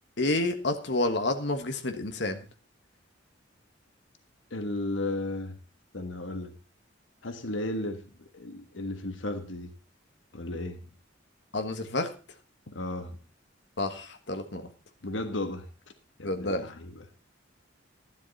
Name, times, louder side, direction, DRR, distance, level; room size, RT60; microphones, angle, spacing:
voice 1, 0.2-2.5 11.5-12.1 13.8-14.7 16.2-16.7, left 2 dB, 60° left, 6 dB, 1.5 m, -29 dB
voice 2, 4.5-5.5 5.9-6.6 7.2-9.7 10.3-10.8 12.7-13.2 15.0-15.7 16.2-17.0, left 2 dB, 85° left, 7 dB, 1.4 m, -34 dB
12.5 x 11.5 x 4.1 m, 0.34 s
head